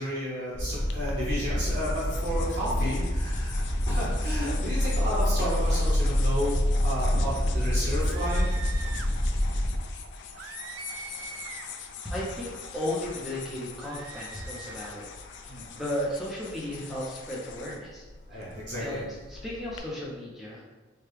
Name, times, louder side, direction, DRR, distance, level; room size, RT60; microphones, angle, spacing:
voice 1, 0.0-8.5 15.5-15.6 18.3-19.0, equal, 60° right, -7 dB, 1.1 m, -32 dB
sound 1, 0.5-9.8, left 1 dB, 35° left, 0.8 m, -27 dB
sound 2, 0.9-19.8, left 6 dB, 65° left, 0.4 m, -43 dB
sound 3, 7.9-9.1 10.4-11.8 13.8-15.0, right 6 dB, 85° right, 0.3 m, -43 dB
voice 2, 12.1-15.1 15.4-18.0 18.3-18.4 18.8-20.6, left 1 dB, ahead, -6 dB, 0.7 m, -35 dB
4.5 x 2.3 x 3.3 m, 1.2 s
head